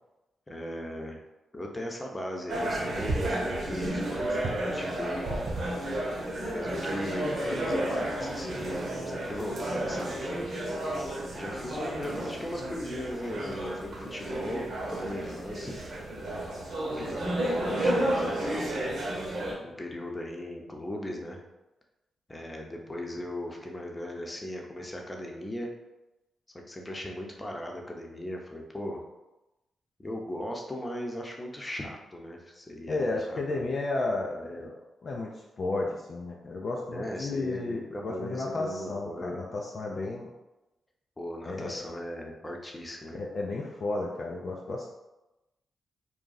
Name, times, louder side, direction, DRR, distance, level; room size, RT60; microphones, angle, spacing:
voice 1, 0.5-1.2 1.5-5.3 6.5-10.9 11.3-15.7 16.9-19.0 19.6-21.4 22.3-25.7 26.5-29.0 30.0-33.7 34.4-34.7 36.9-39.4 41.2-43.2, left 1 dB, 25° left, 1 dB, 0.7 m, -38 dB
sound 1, 2.5-19.5, right 1 dB, 65° right, 0.8 m, -32 dB
voice 2, 32.9-34.7 35.0-40.3 41.5-41.9 43.1-44.9, left 2 dB, 55° left, -1 dB, 0.4 m, -33 dB
2.6 x 2.2 x 3.9 m, 1.0 s
hypercardioid pair, 40°, 0 cm